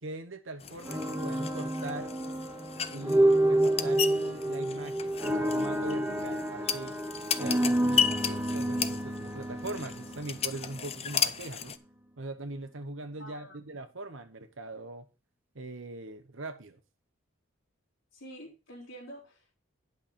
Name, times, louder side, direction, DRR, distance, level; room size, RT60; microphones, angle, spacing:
voice 1, 0.0-2.1 2.9-6.9 7.4-11.7 12.2-15.1 15.5-16.8, right 2 dB, 65° right, 1.2 m, -41 dB
sound 1, 0.6-11.8, left 7 dB, 30° left, 0.5 m, -35 dB
sound 2, 0.9-10.9, right 1 dB, 10° right, 0.9 m, -29 dB
voice 2, 13.2-13.6 18.1-19.7, equal, 65° left, 3.7 m, -48 dB
10.5 x 5.9 x 5.4 m
head